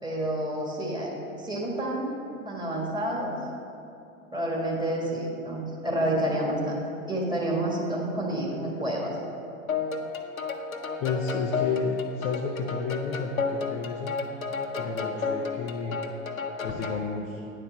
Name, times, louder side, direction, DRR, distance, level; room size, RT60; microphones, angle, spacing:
voice 1, 0.0-2.1 2.4-3.3 4.3-6.8 7.1-9.2, right 1 dB, 10° right, -3 dB, 1.7 m, -29 dB
sound 1, 9.7-17.1, left 4 dB, 90° left, 0.8 m, -32 dB
voice 2, 11.0-14.1 14.8-16.1 16.6-17.4, left 5 dB, 20° left, 1 dB, 0.3 m, -31 dB
9.7 x 4.4 x 6.5 m, 2.6 s
figure-of-eight pair, 95°, 41 cm